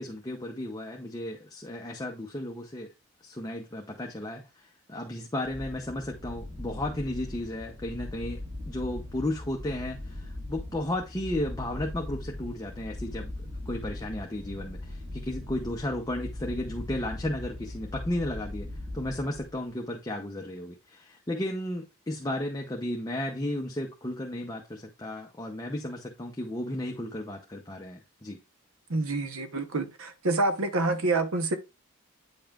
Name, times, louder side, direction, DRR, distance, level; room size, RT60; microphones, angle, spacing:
voice 1, 0.0-2.9 3.2-13.3 13.7-18.7 18.9-28.4, left 1 dB, 15° left, 0.7 m, -34 dB
sound 1, 5.4-19.7, left 1 dB, 30° right, 2.0 m, -40 dB
voice 2, 28.9-31.6, right 2 dB, 70° right, 1.0 m, -27 dB
8.9 x 5.3 x 2.4 m
head